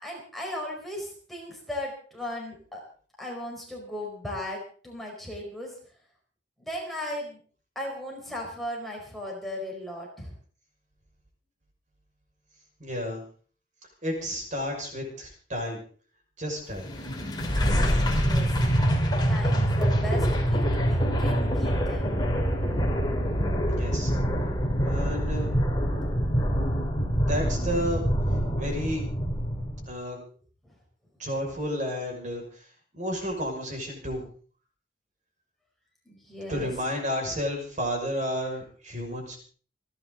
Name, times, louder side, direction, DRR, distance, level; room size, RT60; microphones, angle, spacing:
voice 1, 0.0-2.8 3.2-5.7 6.6-7.4 7.7-10.3 18.2-18.5 19.3-22.2 36.1-36.7, left 1 dB, ahead, -2 dB, 4.8 m, -37 dB
voice 2, 12.8-13.2 14.0-15.8 16.4-16.9 23.7-24.1 24.8-25.5 27.2-28.0 28.6-29.1 29.9-30.2 31.2-32.7 32.9-34.2 36.5-39.4, equal, 40° right, 2 dB, 5.9 m, -31 dB
sound 1, 16.8-29.9, equal, 25° left, 3.1 m, -25 dB
28.5 x 10.5 x 3.9 m, 0.43 s
head